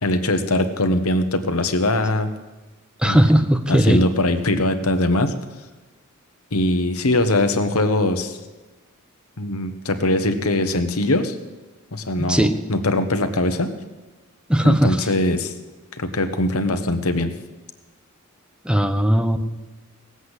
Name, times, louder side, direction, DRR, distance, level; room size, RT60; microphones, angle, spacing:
voice 1, 0.0-2.3 3.0-3.2 3.7-5.4 6.5-8.4 9.4-11.4 11.9-13.7 14.6-15.5 15.9-17.3, left 1 dB, 80° left, 8 dB, 1.2 m, -21 dB
voice 2, 3.0-4.0 12.2-12.6 14.5-15.1 18.6-19.4, equal, 5° right, 8 dB, 0.7 m, -17 dB
17.5 x 8.0 x 8.1 m, 1.2 s
head